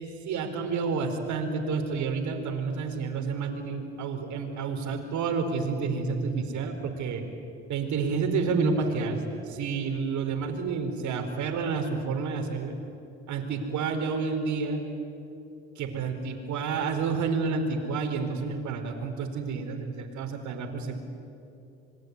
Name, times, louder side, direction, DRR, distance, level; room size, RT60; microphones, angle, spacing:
voice 1, 0.0-7.2 7.7-12.8 13.3-14.8 15.8-21.0, right 4 dB, 60° right, 5 dB, 4.6 m, -29 dB
26.0 x 22.5 x 9.7 m, 2.8 s
hypercardioid pair, 65°, 32 cm